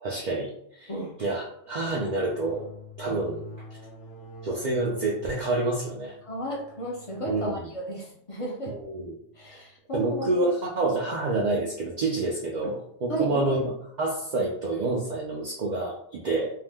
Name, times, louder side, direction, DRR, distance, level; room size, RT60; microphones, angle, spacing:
voice 1, 0.0-0.9 1.2-2.6 3.0-3.4 4.4-6.2 7.3-7.6 8.7-9.2 9.5-9.6 9.9-13.7 14.0-16.5, right 2 dB, 55° right, -3 dB, 0.6 m, -28 dB
sound 1, 1.7-9.8, equal, 75° left, 0.8 m, -46 dB
voice 2, 6.2-8.7 9.3-10.5 13.1-13.7, equal, 40° left, -3 dB, 0.6 m, -34 dB
2.8 x 2.0 x 3.3 m, 0.73 s
omnidirectional pair, 1.1 m